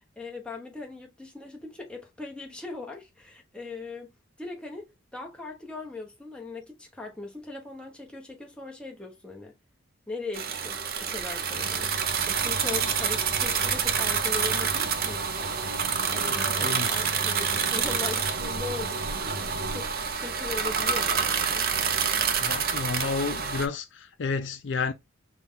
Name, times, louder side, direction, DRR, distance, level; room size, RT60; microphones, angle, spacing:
voice 1, 0.2-4.1 4.4-9.5 10.1-21.7, left 3 dB, 5° left, 0.9 m, -40 dB
sound 1, 10.3-23.7, right 6 dB, 45° right, 0.6 m, -27 dB
sound 2, 11.5-19.9, equal, 70° right, 1.0 m, -40 dB
voice 2, 16.2-17.0 22.4-24.9, left 4 dB, 55° left, 0.4 m, -31 dB
5.9 x 2.3 x 3.7 m
head